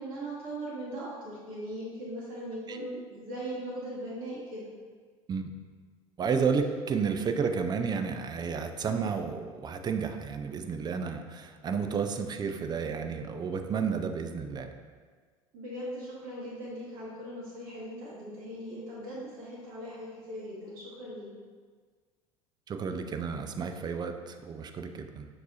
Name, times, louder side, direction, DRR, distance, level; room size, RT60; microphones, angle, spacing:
voice 1, 0.0-4.7 15.5-21.3, right 1 dB, 50° right, -7 dB, 1.1 m, -39 dB
voice 2, 6.2-14.7 22.7-25.3, right 6 dB, 25° right, 7 dB, 0.3 m, -31 dB
5.9 x 2.9 x 2.6 m, 1.5 s
figure-of-eight pair, 70°, 18 cm